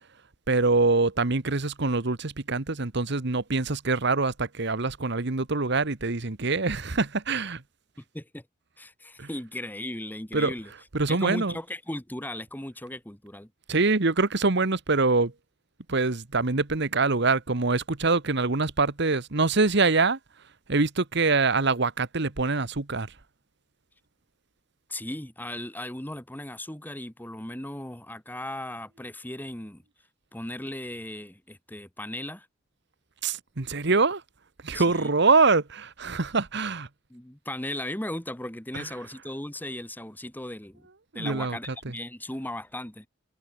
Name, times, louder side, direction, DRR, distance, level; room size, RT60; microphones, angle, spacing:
voice 1, 0.5-7.6 9.2-9.3 10.3-10.5 10.9-11.5 13.7-15.3 15.9-20.2 20.7-23.1 33.2-34.2 34.6-36.9 38.7-38.9 41.1-41.9, right 3 dB, 60° right, 1.4 m, -24 dB
voice 2, 8.0-8.5 8.8-10.7 11.1-13.5 24.9-29.8 30.3-32.5 34.7-35.1 37.1-40.9 41.1-43.1, left 1 dB, 10° left, 1.8 m, -37 dB
head